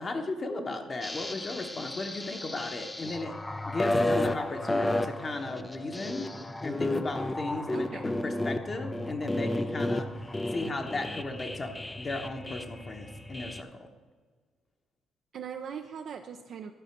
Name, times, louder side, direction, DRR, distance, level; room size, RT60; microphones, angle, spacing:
voice 1, 0.0-3.4 3.7-6.3 6.6-10.1 10.5-13.9, left 2 dB, 35° left, 4 dB, 1.0 m, -35 dB
sound 1, 1.0-13.6, left 1 dB, 15° left, 0.4 m, -33 dB
voice 2, 7.7-8.2 15.3-16.7, right 7 dB, 65° right, 4 dB, 0.5 m, -40 dB
11.5 x 4.2 x 5.9 m, 1.5 s
cardioid pair, 85°, 0 cm